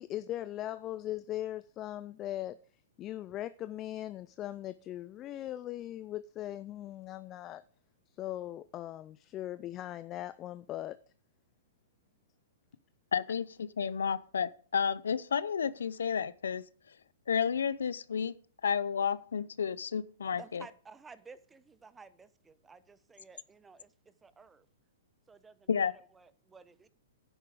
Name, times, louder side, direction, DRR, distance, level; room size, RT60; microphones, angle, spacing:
voice 1, 0.0-2.6 3.0-7.6 8.2-11.0, left 13 dB, 30° left, 0.4 m, -39 dB
voice 2, 13.1-16.6 17.3-18.3 18.6-20.7 25.7-25.9, left 7 dB, 80° left, 0.6 m, -31 dB
voice 3, 20.4-23.9 24.2-24.7 25.3-26.9, right 4 dB, 10° right, 0.8 m, -54 dB
10.5 x 8.9 x 4.9 m
hypercardioid pair, 125°, 0 cm